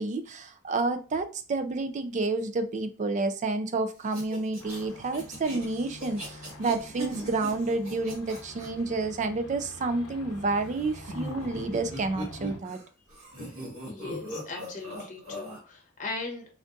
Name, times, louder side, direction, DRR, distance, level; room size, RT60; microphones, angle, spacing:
voice 1, 0.0-12.8, right 3 dB, 35° right, 0.3 m, -30 dB
sound 1, 4.1-8.7 10.5-12.8 13.1-15.6, right 1 dB, 70° right, 1.6 m, -40 dB
sound 2, 4.6-12.6, left 1 dB, 75° left, 0.6 m, -46 dB
voice 2, 13.8-16.4, left 3 dB, 35° left, 0.9 m, -38 dB
3.5 x 2.5 x 2.5 m
head